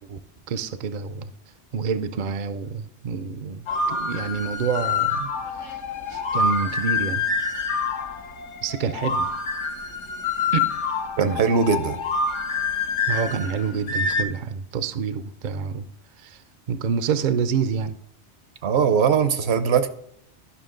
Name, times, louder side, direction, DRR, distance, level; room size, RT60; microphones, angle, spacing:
voice 1, 0.5-1.3 1.7-5.3 6.1-7.2 8.6-9.3 10.5-10.6 11.2-11.4 13.1-15.9 16.2-16.4 16.7-17.9, right 6 dB, 55° right, 0.5 m, -27 dB
sound 1, 3.7-14.2, left 4 dB, 80° left, 1.2 m, -27 dB
voice 2, 11.2-12.0 18.6-19.9, right 6 dB, 70° right, 0.9 m, -20 dB
11.5 x 5.7 x 3.8 m
omnidirectional pair, 1.2 m